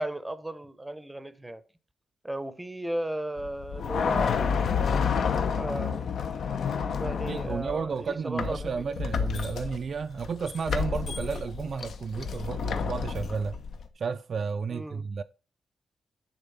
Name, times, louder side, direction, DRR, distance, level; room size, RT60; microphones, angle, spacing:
voice 1, 0.0-1.6 2.2-4.6 5.5-6.0 7.0-8.8 14.7-15.1, right 1 dB, 10° right, 0.7 m, -35 dB
sound 1, 3.4-7.9 8.4-13.9, left 6 dB, 70° left, 0.9 m, -30 dB
voice 2, 7.2-13.6 14.0-15.2, right 5 dB, 45° right, 0.4 m, -32 dB
10.5 x 4.1 x 5.4 m
wide cardioid pair, 175°, 0 cm